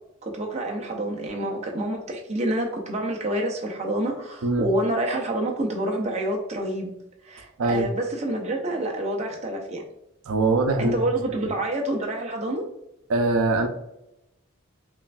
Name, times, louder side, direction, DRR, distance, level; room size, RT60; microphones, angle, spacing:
voice 1, 0.2-6.9 7.2-9.8 10.8-12.6, right 1 dB, 30° right, 0 dB, 0.6 m, -27 dB
voice 2, 10.3-11.0 11.4-11.5 13.1-13.7, right 3 dB, 90° right, 6 dB, 0.5 m, -22 dB
5.4 x 2.5 x 2.3 m, 0.84 s
head